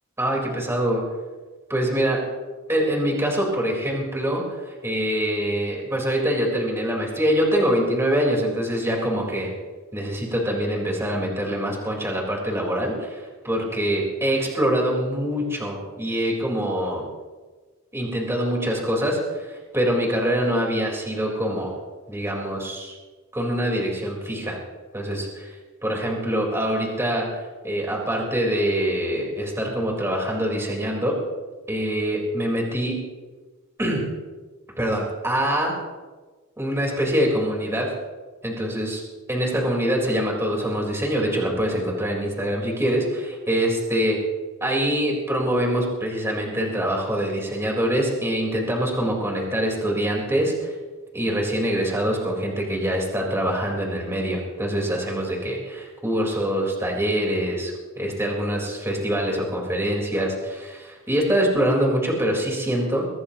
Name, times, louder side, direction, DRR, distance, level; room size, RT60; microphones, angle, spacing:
voice 1, 0.2-1.0 1.7-2.2 2.7-9.5 9.9-17.1 17.9-21.7 22.1-23.0 23.3-24.6 24.9-25.6 25.8-27.4 27.6-31.2 31.7-33.0 33.8-34.1 34.8-35.7 36.6-37.9 38.4-39.0 39.3-44.2 44.6-50.7 51.1-63.1, equal, 15° right, -2 dB, 4.1 m, -24 dB
24.5 x 18.5 x 3.0 m, 1.3 s
head